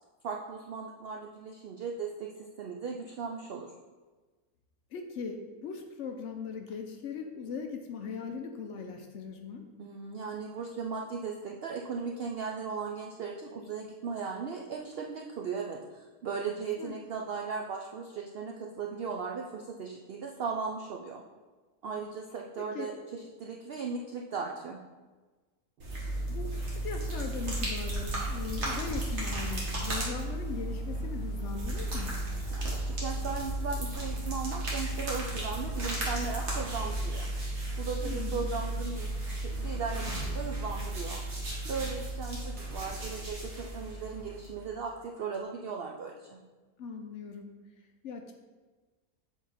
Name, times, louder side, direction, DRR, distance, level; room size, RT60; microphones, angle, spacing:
voice 1, 0.2-3.7 9.8-21.2 21.8-24.8 32.5-37.3 37.8-41.2 41.6-46.4, right 5 dB, 70° right, 1 dB, 0.5 m, -37 dB
voice 2, 4.9-9.6 16.8-17.0 22.6-22.9 26.3-32.2 38.0-38.5 46.8-48.3, left 5 dB, 65° left, 4 dB, 0.8 m, -40 dB
sound 1, 25.8-44.7, right 1 dB, 50° right, 1.6 m, -34 dB
7.2 x 3.8 x 4.0 m, 1.3 s
omnidirectional pair, 1.5 m